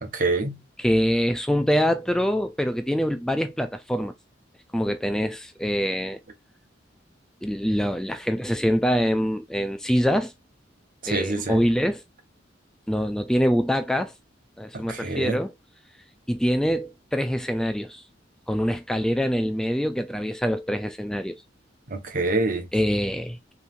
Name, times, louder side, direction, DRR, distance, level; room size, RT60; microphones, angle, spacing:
voice 1, 0.0-0.6 11.0-11.7 14.7-15.4 21.9-22.7, right 2 dB, 50° right, 1.1 m, -26 dB
voice 2, 0.8-4.1 4.7-6.2 7.4-10.3 11.1-12.0 12.9-14.1 14.6-15.5 16.3-18.0 18.5-21.4 22.7-23.5, equal, 5° left, 0.4 m, -24 dB
5.5 x 3.2 x 2.5 m
head